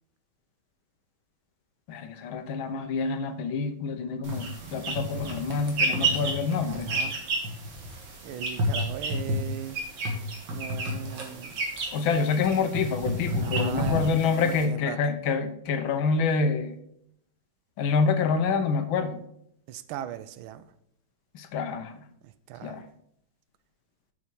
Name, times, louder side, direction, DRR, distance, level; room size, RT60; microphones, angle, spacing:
voice 1, 1.9-6.9 11.9-16.8 17.8-19.2 21.3-22.0 22.6-22.8, left 5 dB, 75° left, 9 dB, 1.6 m, -27 dB
sound 1, 4.2-14.6, right 1 dB, 65° right, 2.4 m, -31 dB
voice 2, 6.6-7.2 8.2-9.8 10.5-11.6 13.4-15.0 19.7-20.7 22.2-22.8, right 10 dB, 90° right, 13 dB, 1.5 m, -39 dB
8.4 x 5.7 x 4.7 m, 0.73 s
omnidirectional pair, 2.2 m